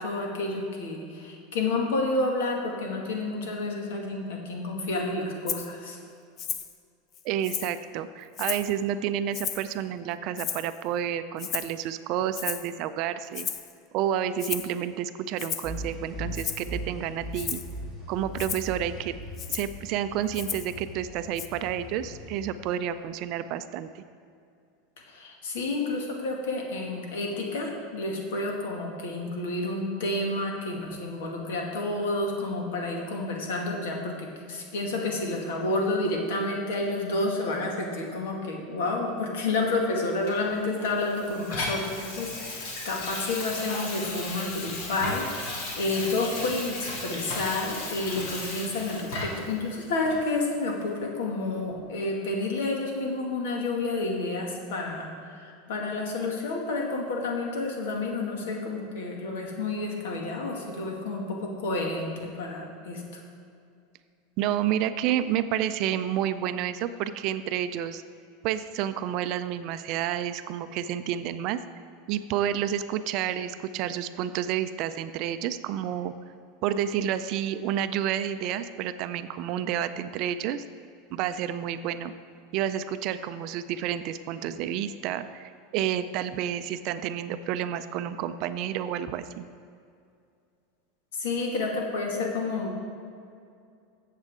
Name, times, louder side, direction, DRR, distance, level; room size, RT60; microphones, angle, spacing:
voice 1, 0.0-6.0 25.1-63.0 91.2-92.7, left 2 dB, 80° left, 0 dB, 2.0 m, -30 dB
Rattle (instrument), 5.5-5.7 6.4-6.7 7.1-7.8 8.3-8.7 9.3-9.7 10.4-10.8 11.4-11.8 12.3-12.7 13.3-13.7 14.4-14.7 15.4-15.8 16.3-16.7 17.3-17.7 18.4-18.7 19.4-19.7 20.3-20.8 21.4-21.5, left 8 dB, 30° left, 0.5 m, -34 dB
voice 2, 7.2-13.5 13.9-17.6 18.1-19.2 19.5-24.0 64.4-68.0 68.4-71.6 72.1-76.1 76.6-80.6 81.1-82.1 82.5-89.5, right 10 dB, 40° right, 11 dB, 0.4 m, -30 dB
sound 1, 15.6-23.1, equal, 10° left, 2.3 m, -40 dB
Water tap faucet / Sink (filling or washing), 40.3-49.5 50.1-50.2, left 2 dB, 60° left, 2.4 m, -35 dB
14.5 x 7.4 x 3.7 m, 2.4 s
supercardioid pair, 165°, 0 cm